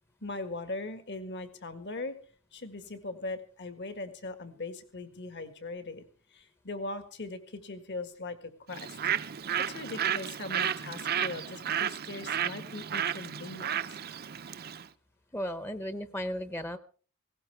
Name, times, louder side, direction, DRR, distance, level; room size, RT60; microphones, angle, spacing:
voice 1, 0.2-2.2 2.5-6.0 6.3-9.0 9.3-14.0, left 2 dB, 55° left, 9 dB, 1.7 m, -40 dB
Bird, 8.7-14.9, right 9 dB, 45° right, 0.6 m, -33 dB
voice 2, 15.3-16.8, equal, 10° left, 11 dB, 0.8 m, -35 dB
18.5 x 17.0 x 3.4 m, 0.40 s
head